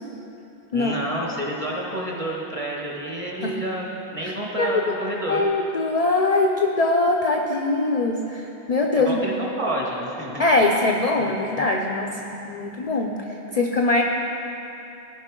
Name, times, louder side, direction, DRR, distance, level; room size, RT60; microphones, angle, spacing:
voice 1, 0.7-5.5 8.9-10.4 11.2-11.3, right 1 dB, 30° right, -3 dB, 1.4 m, -29 dB
voice 2, 4.2-4.9 5.3-9.2 10.4-14.0, left 2 dB, 45° left, 1 dB, 0.5 m, -22 dB
16.0 x 5.5 x 3.7 m, 3.0 s
omnidirectional pair, 1.1 m